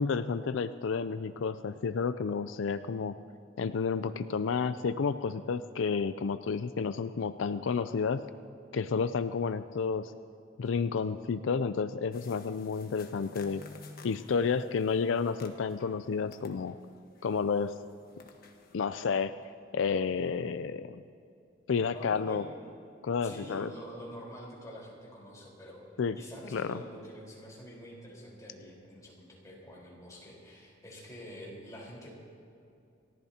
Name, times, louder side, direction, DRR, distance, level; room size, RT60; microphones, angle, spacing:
voice 1, 0.0-3.1 3.6-8.3 8.7-10.1 10.6-13.6 14.0-16.8 17.2-17.7 18.7-19.3 19.7-21.0 21.7-22.4 23.0-23.7 26.0-26.2 26.5-26.7, left 5 dB, 80° left, 11 dB, 0.4 m, -31 dB
sound 1, 12.1-16.0 16.3-18.7, left 3 dB, 50° left, 1.4 m, -53 dB
voice 2, 21.9-22.5 23.2-25.8 26.2-32.1, equal, 20° left, -4 dB, 4.3 m, -46 dB
29.5 x 14.0 x 2.9 m, 2.6 s
head